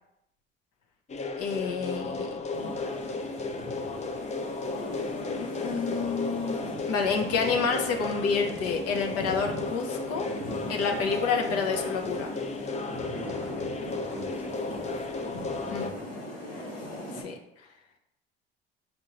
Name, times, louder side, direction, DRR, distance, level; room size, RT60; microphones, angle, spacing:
sound 1, 1.1-15.9, left 3 dB, 25° left, 0.5 m, -34 dB
voice 1, 1.4-2.3 5.6-6.6 6.9-10.3 10.7-12.3 15.7-15.8 17.1-17.3, left 5 dB, 55° left, 3 dB, 0.7 m, -29 dB
sound 2, 2.5-17.2, left 1 dB, 85° left, 1.1 m, -39 dB
voice 2, 12.9-15.1 15.5-16.0, right 1 dB, 5° right, 1 dB, 0.9 m, -46 dB
5.2 x 2.6 x 2.9 m, 0.82 s
hypercardioid pair, 65°, 29 cm